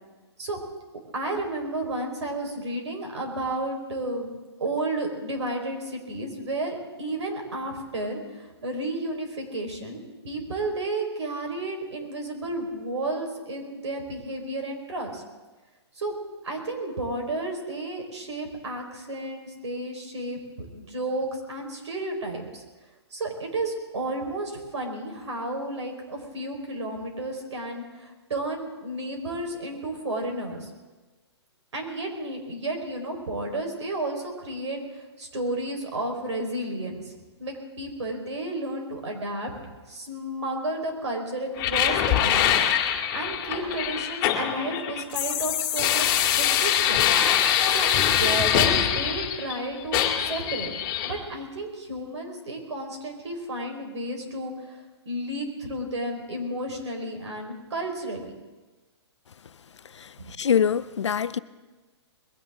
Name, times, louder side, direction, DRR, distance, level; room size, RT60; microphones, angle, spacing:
voice 1, 1.1-4.3 4.6-15.2 15.9-16.1 16.4-22.6 23.1-30.7 31.7-37.1 37.4-39.5 39.9-42.6 42.8-47.1 47.7-50.7 51.0-58.3 60.2-60.4, right 2 dB, 85° right, 4.5 m, -32 dB
sound 1, 41.6-49.6 49.9-51.1, left 10 dB, 30° left, 1.8 m, -23 dB
voice 2, 60.4-61.4, left 7 dB, 85° left, 0.7 m, -24 dB
21.0 x 16.5 x 3.7 m
hypercardioid pair, 145°, 14 cm